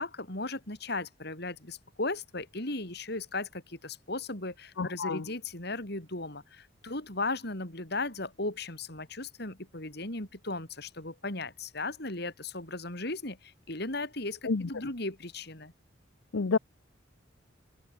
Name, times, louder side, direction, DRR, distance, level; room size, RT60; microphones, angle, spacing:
voice 1, 0.0-15.7, left 2 dB, 55° left, 5.2 m, -36 dB
voice 2, 4.8-5.2 14.4-14.7 16.3-16.6, left 4 dB, 85° left, 0.7 m, -29 dB
head